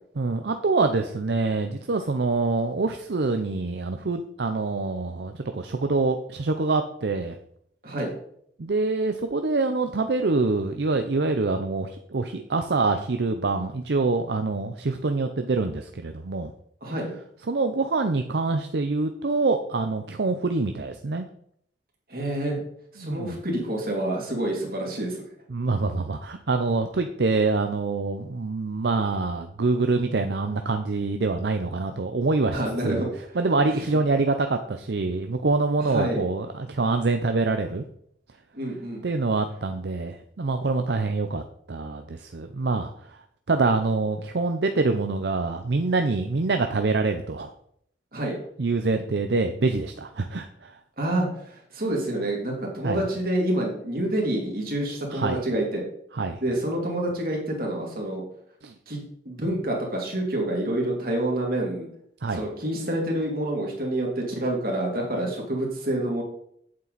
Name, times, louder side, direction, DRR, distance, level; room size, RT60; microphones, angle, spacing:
voice 1, 0.2-7.3 8.6-16.5 17.5-21.3 23.0-23.4 25.5-32.6 32.8-33.1 33.4-37.8 39.0-41.4 41.7-42.9 43.5-47.5 48.6-50.5 52.8-53.0 55.1-55.4 56.1-56.4 58.6-58.7 62.2-62.4, right 3 dB, 75° right, 7 dB, 0.6 m, -25 dB
voice 2, 16.8-17.1 22.1-22.6 22.9-25.2 32.5-33.4 33.7-33.9 35.8-36.3 38.5-39.0 48.1-48.4 51.0-55.8 56.4-58.2 58.9-61.9 62.3-66.2, right 1 dB, 55° right, -1 dB, 2.7 m, -28 dB
8.5 x 7.6 x 4.0 m, 0.68 s
head